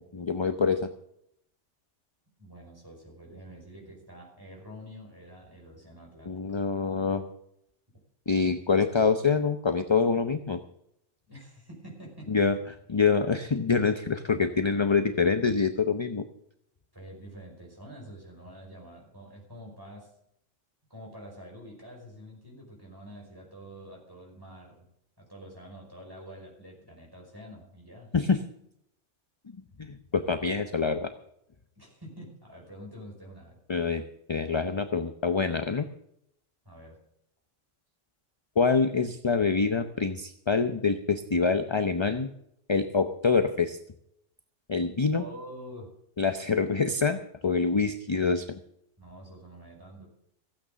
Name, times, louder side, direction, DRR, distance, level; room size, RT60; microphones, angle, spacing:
voice 1, 0.1-0.9 6.3-7.2 8.3-10.6 12.3-12.6 12.9-16.2 28.1-28.4 29.8-31.1 33.7-34.0 34.3-35.9 38.6-42.3 42.7-43.8 44.7-45.2 46.2-48.6, left 5 dB, 30° left, 8 dB, 0.6 m, -25 dB
voice 2, 2.4-6.3 11.3-12.4 16.9-20.1 20.9-24.9 25.2-28.1 31.8-33.6 36.6-37.0 45.0-45.9 49.0-50.1, equal, 20° right, -1 dB, 5.4 m, -47 dB
15.5 x 8.8 x 6.8 m, 0.75 s
omnidirectional pair, 1.2 m